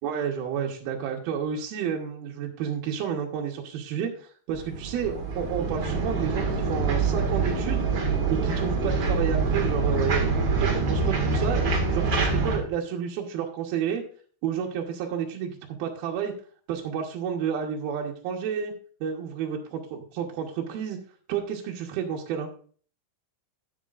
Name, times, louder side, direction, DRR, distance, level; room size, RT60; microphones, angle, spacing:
voice 1, 0.0-7.9 8.3-10.2 10.6-14.0 14.4-15.5 15.8-16.3 16.7-18.7 19.0-21.0 21.3-22.5, right 8 dB, 75° right, -1 dB, 3.0 m, -30 dB
sound 1, 4.5-12.6, right 4 dB, 40° right, 2.1 m, -25 dB
12.0 x 9.6 x 2.5 m, 0.44 s
omnidirectional pair, 4.5 m